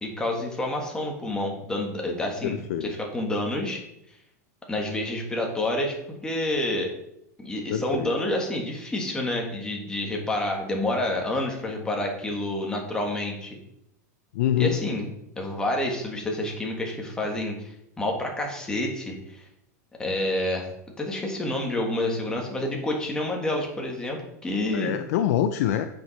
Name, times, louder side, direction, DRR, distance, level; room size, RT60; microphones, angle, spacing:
voice 1, 0.0-3.8 4.7-5.9 6.2-6.9 7.4-13.6 14.6-15.1 15.4-19.4 20.0-20.7 21.0-24.9, left 1 dB, 10° left, 1 dB, 1.5 m, -28 dB
voice 2, 2.4-2.9 7.7-8.1 14.3-14.8 24.7-25.9, left 11 dB, 60° left, 9 dB, 0.5 m, -25 dB
9.2 x 5.2 x 4.1 m, 0.80 s
supercardioid pair, 145°, 9 cm